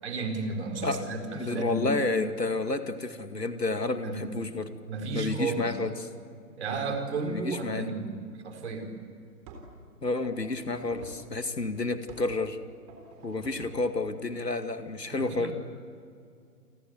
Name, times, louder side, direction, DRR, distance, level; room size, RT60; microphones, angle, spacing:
voice 1, 0.0-1.9 4.0-4.2 4.9-5.7 6.6-8.1 8.4-8.9 15.1-15.5, right 3 dB, 45° right, 4 dB, 4.8 m, -33 dB
voice 2, 1.3-4.7 5.1-6.1 7.3-7.9 10.0-12.6 13.2-15.5, left 3 dB, 80° left, 8 dB, 2.4 m, -30 dB
sound 1, 8.7-8.8 9.4-9.8 10.2-11.3 12.1-12.4 12.9-13.9, right 3 dB, 25° right, 3.7 m, -48 dB
29.5 x 22.0 x 8.3 m, 2.3 s
figure-of-eight pair, 140°, 48 cm